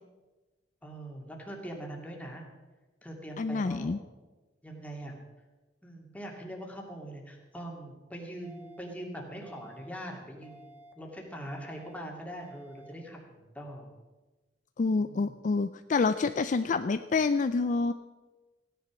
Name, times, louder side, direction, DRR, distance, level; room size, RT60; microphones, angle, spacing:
voice 1, 0.8-2.4 3.0-4.0 4.6-5.1 5.8-13.9 15.0-15.4, right 1 dB, 10° left, 0 dB, 2.5 m, -42 dB
voice 2, 3.4-4.0 14.8-17.9, left 4 dB, 45° left, 11 dB, 0.4 m, -27 dB
sound 1, 8.4-8.9 9.4-9.9 10.4-10.9 11.4-11.9 12.4-12.9, right 1 dB, 15° right, 1.5 m, -53 dB
16.0 x 10.5 x 6.2 m, 1.2 s
head